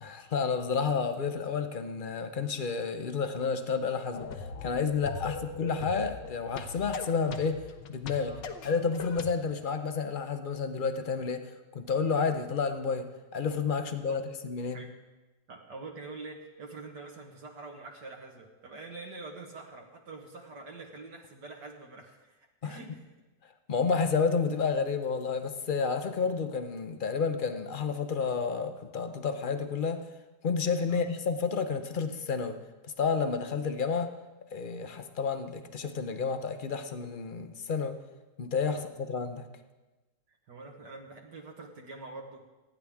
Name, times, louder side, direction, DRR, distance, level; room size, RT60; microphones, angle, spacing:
voice 1, 0.0-7.6 7.9-8.3 8.6-14.8 22.6-22.8 23.7-30.1 30.4-32.6 33.0-34.1 34.5-38.0 38.4-39.5, left 5 dB, 50° left, 8 dB, 0.6 m, -30 dB
sound 1, 4.1-9.3, left 5 dB, 75° left, 1.6 m, -40 dB
voice 2, 15.5-23.0 30.9-31.0 38.7-38.8 40.5-42.5, right 3 dB, 65° right, 0 dB, 1.9 m, -45 dB
27.5 x 10.0 x 3.5 m, 1.1 s
omnidirectional pair, 2.0 m